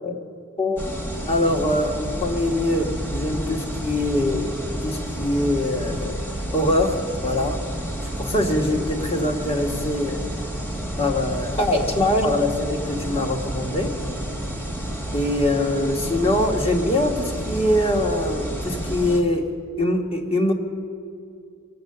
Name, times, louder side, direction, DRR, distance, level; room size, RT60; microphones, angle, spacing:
sound 1, 0.8-19.2, right 1 dB, 10° left, 1.4 m, -30 dB
voice 1, 1.3-4.5 4.8-7.6 8.2-10.2 11.0-13.9 15.1-19.4 19.8-20.5, left 1 dB, 25° left, 2 dB, 1.5 m, -23 dB
23.0 x 7.6 x 6.7 m, 2.3 s
head